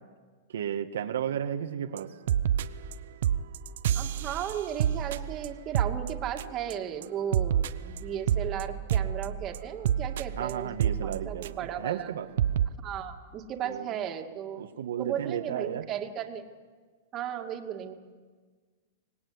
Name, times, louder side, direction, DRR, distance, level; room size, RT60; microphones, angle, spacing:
voice 1, 0.5-2.1 10.4-12.3 13.6-13.9 14.6-15.9, right 9 dB, 85° right, 5 dB, 1.6 m, -33 dB
sound 1, 2.0-2.1 2.3-2.9 3.2-6.7 7.0-11.8 12.1-12.2 12.4-12.7, right 10 dB, 70° right, 0.9 m, -29 dB
voice 2, 3.9-10.7 11.0-12.1 12.8-14.6 15.0-16.4 17.1-17.9, right 9 dB, 30° right, 3 dB, 2.4 m, -35 dB
25.0 x 19.5 x 9.7 m, 1.5 s
hypercardioid pair, 145°, 0 cm